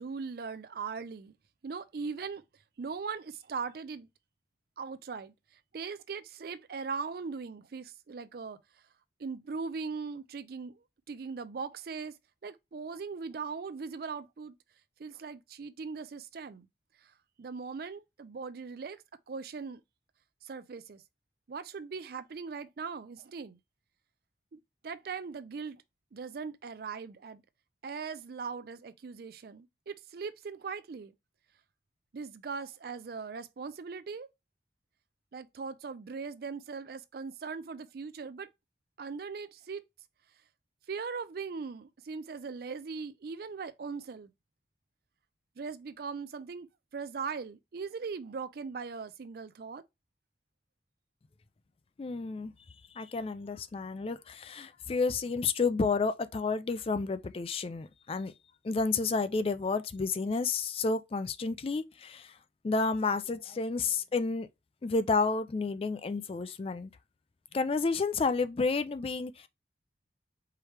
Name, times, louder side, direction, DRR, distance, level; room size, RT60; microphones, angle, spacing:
voice 1, 0.0-1.3 1.6-2.4 2.8-4.1 4.8-5.3 5.7-8.6 9.2-10.7 11.1-12.2 12.4-14.5 15.0-16.7 17.4-19.0 19.3-19.8 20.4-21.0 21.5-23.6 24.5-25.8 26.1-27.4 27.8-31.1 32.1-34.3 35.3-38.5 39.0-39.8 40.9-44.3 45.6-46.7 46.9-49.8, right 5 dB, 55° right, 0.4 m, -39 dB
voice 2, 52.0-52.5 52.9-58.3 58.6-62.4 62.6-64.5 64.8-66.9 67.5-69.5, left 4 dB, 30° left, 0.3 m, -31 dB
4.7 x 3.1 x 3.2 m
head